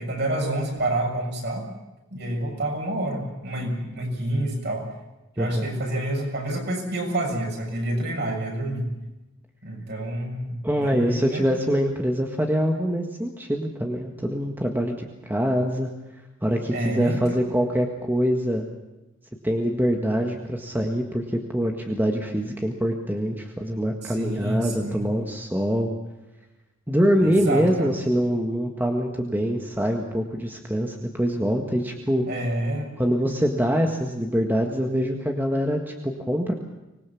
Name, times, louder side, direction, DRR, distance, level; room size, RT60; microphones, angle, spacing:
voice 1, 0.0-1.6 2.1-4.9 5.4-8.9 9.6-11.4 16.7-17.2 24.0-25.0 27.2-27.9 32.3-32.9, right 1 dB, 50° right, 1 dB, 6.7 m, -28 dB
voice 2, 5.4-5.7 10.6-15.9 16.4-18.6 19.4-26.0 26.9-32.3 33.0-36.5, equal, 10° right, 2 dB, 1.7 m, -24 dB
25.0 x 20.5 x 7.2 m, 1.0 s
head